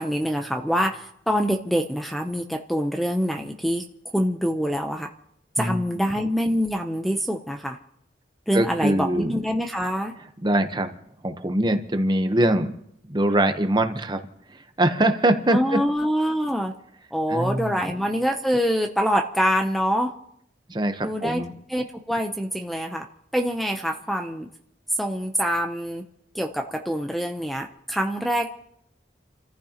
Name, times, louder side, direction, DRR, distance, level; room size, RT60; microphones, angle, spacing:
voice 1, 0.0-3.8 4.1-5.1 5.6-7.8 8.5-10.1 15.5-16.7 17.1-20.1 21.0-21.4 21.7-23.1 23.3-24.5 25.0-26.0 26.3-28.5, equal, ahead, 4 dB, 0.7 m, -25 dB
voice 2, 5.6-6.1 8.5-9.3 10.4-10.9 11.2-12.7 13.1-14.2 14.5-15.8 17.3-17.9 20.7-21.5, right 1 dB, 25° right, 8 dB, 0.9 m, -23 dB
29.5 x 14.5 x 2.9 m, 0.74 s
head